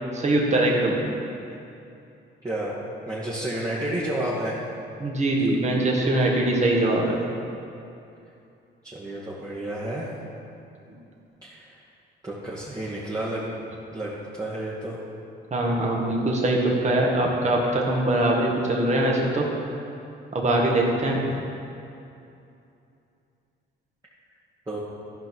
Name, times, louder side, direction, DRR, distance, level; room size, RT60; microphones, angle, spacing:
voice 1, 0.1-1.0 5.0-7.2 15.5-19.5 20.3-21.3, right 1 dB, 35° right, -1 dB, 1.9 m, -22 dB
voice 2, 2.4-4.6 8.8-10.1 11.4-11.8 12.2-13.6 13.9-15.0 24.7-24.8, right 1 dB, 20° right, -7 dB, 1.8 m, -31 dB
13.0 x 5.4 x 6.3 m, 2.7 s
cardioid pair, 90°, 20 cm